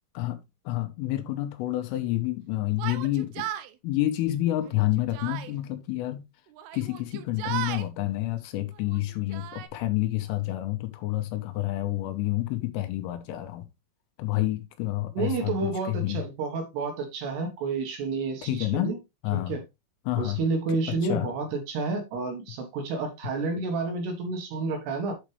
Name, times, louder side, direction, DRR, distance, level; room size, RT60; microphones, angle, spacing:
voice 1, 0.7-3.5 3.8-6.2 6.7-13.7 14.2-16.2 18.4-18.9 19.2-19.6 20.1-20.4 20.9-21.3, left 16 dB, 85° left, 3.6 m, -29 dB
Yell, 2.7-3.7 4.6-5.5 6.5-7.9 8.8-9.7, right 12 dB, 90° right, 2.3 m, -36 dB
voice 2, 15.1-19.0 19.3-19.6 20.2-25.1, right 4 dB, 70° right, 3.0 m, -30 dB
8.1 x 6.3 x 3.2 m
omnidirectional pair, 5.7 m